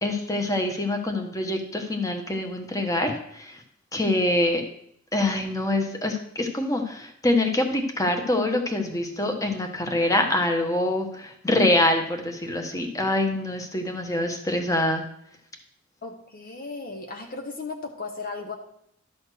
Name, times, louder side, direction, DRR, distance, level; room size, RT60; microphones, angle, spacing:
voice 1, 0.0-3.6 3.9-4.6 5.1-15.0, left 1 dB, 15° left, 4 dB, 1.1 m, -25 dB
voice 2, 16.0-18.5, left 3 dB, 45° left, 4 dB, 0.9 m, -36 dB
12.0 x 4.3 x 6.7 m, 0.72 s
head